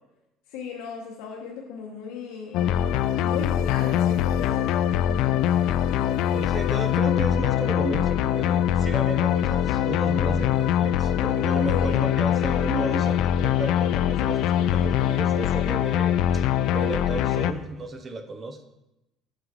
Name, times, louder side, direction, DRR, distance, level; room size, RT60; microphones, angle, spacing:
voice 1, 0.5-2.8 3.2-5.6 11.7-12.1, left 6 dB, 85° left, 0 dB, 0.9 m, -36 dB
sound 1, 2.5-17.5, left 10 dB, 60° left, 0.3 m, -23 dB
voice 2, 6.0-16.4 16.7-18.6, right 2 dB, 20° right, 7 dB, 0.6 m, -34 dB
7.4 x 6.0 x 3.7 m, 0.95 s
cardioid pair, 160°, 0 cm